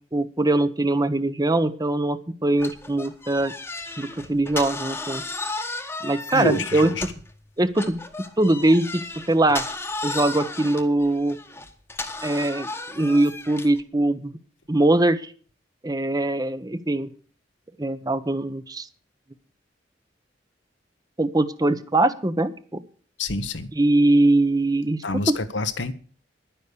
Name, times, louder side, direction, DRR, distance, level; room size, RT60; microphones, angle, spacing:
voice 1, 0.1-3.5 4.0-5.2 6.0-6.9 7.6-8.0 8.4-9.6 10.0-11.4 12.2-14.3 14.7-15.2 15.8-17.1 17.8-18.9 21.2-22.5 23.7-25.4, right 2 dB, 20° right, 0.9 m, -22 dB
sound 1, 2.6-7.3 7.7-13.8, left 2 dB, 15° left, 1.2 m, -34 dB
voice 2, 6.3-7.0 23.2-23.7 25.0-25.9, left 3 dB, 80° left, 1.2 m, -27 dB
11.5 x 10.0 x 6.8 m
head